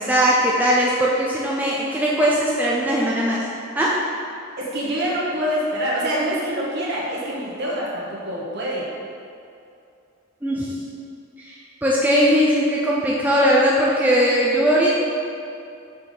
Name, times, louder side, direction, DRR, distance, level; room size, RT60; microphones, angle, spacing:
voice 1, 0.0-3.5 3.8-4.0 10.4-10.8 11.4-11.6 11.8-14.9, equal, 10° right, -5 dB, 0.5 m, -19 dB
voice 2, 4.6-8.9, equal, 55° right, -6 dB, 1.5 m, -25 dB
5.9 x 4.2 x 4.9 m, 2.5 s
head